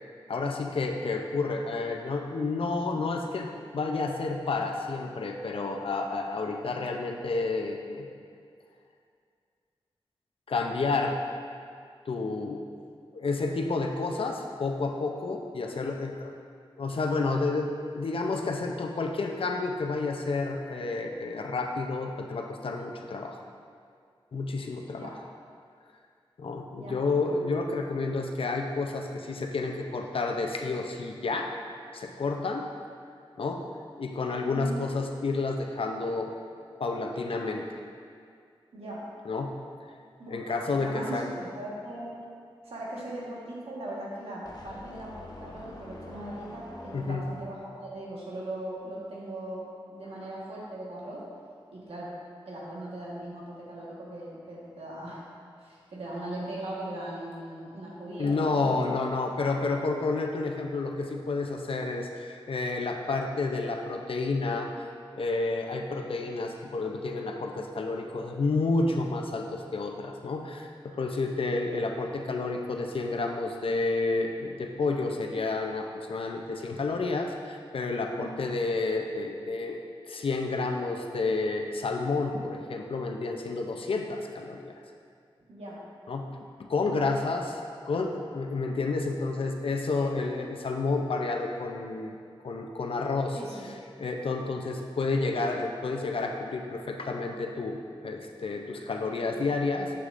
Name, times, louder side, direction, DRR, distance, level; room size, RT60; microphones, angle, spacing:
voice 1, 0.3-3.5 3.7-8.1 10.5-11.2 12.1-12.6 13.1-16.3 16.8-23.4 24.3-25.2 26.4-31.5 31.9-32.6 33.4-33.6 34.0-36.3 36.8-37.6 39.3-39.5 40.3-41.3 46.9-47.2 58.2-64.7 65.1-79.8 80.1-84.7 86.1-86.3 86.6-87.6 87.9-92.2 92.4-93.4 94.0-99.9, left 3 dB, 70° left, 2 dB, 0.6 m, -30 dB
voice 2, 34.4-34.8 38.7-39.0 40.2-42.1 42.6-51.2 51.7-52.1 52.4-55.2 55.6-59.0 78.2-78.4 85.5-85.8 89.9-90.1 93.3-93.7, right 1 dB, 90° right, -6 dB, 1.5 m, -39 dB
sound 1, 44.4-47.6, left 2 dB, 40° left, 0.9 m, -46 dB
7.9 x 6.3 x 2.6 m, 2.2 s
wide cardioid pair, 70°, 10 cm